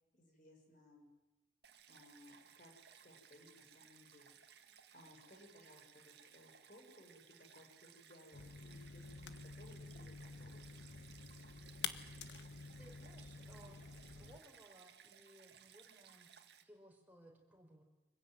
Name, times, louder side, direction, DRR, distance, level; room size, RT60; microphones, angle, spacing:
voice 1, 0.1-1.1 1.9-10.6, left 1 dB, 45° left, 2 dB, 6.2 m, -62 dB
Stream, 1.6-16.6, right 8 dB, 70° right, 1.8 m, -62 dB
sound 1, 8.3-14.4, left 6 dB, 75° left, 1.3 m, -49 dB
voice 2, 12.8-13.8 14.2-16.3 16.6-17.8, right 1 dB, 10° right, 0 dB, 4.4 m, -62 dB
25.0 x 16.0 x 9.4 m, 1.0 s
head